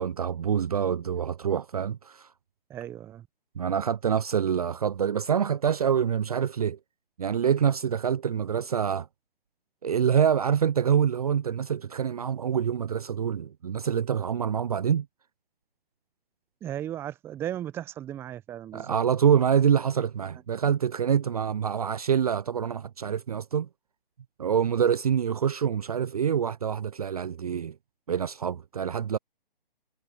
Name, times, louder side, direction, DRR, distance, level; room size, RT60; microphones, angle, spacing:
voice 1, 0.0-2.3 3.6-6.8 7.2-9.1 9.8-15.1 18.7-23.7 24.4-27.7 28.1-29.2, right 8 dB, 40° right, 0.6 m, -26 dB
voice 2, 2.7-3.3 16.6-19.0, right 11 dB, 10° right, 0.9 m, -36 dB
figure-of-eight pair, 140°, 29 cm